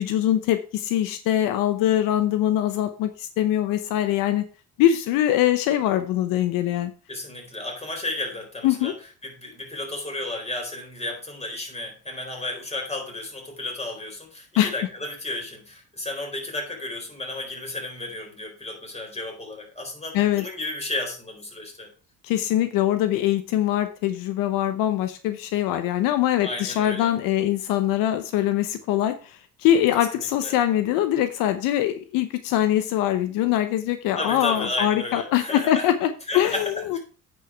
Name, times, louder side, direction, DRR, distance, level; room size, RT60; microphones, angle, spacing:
voice 1, 0.0-4.4 4.8-6.9 8.6-8.9 14.6-14.7 20.1-20.4 22.2-37.0, left 12 dB, 85° left, 1.0 m, -23 dB
voice 2, 7.1-9.0 9.2-21.9 26.4-27.1 30.0-30.6 34.2-35.9 36.3-37.0, left 2 dB, 20° left, 4.2 m, -33 dB
9.3 x 5.6 x 4.7 m
supercardioid pair, 85°, 33 cm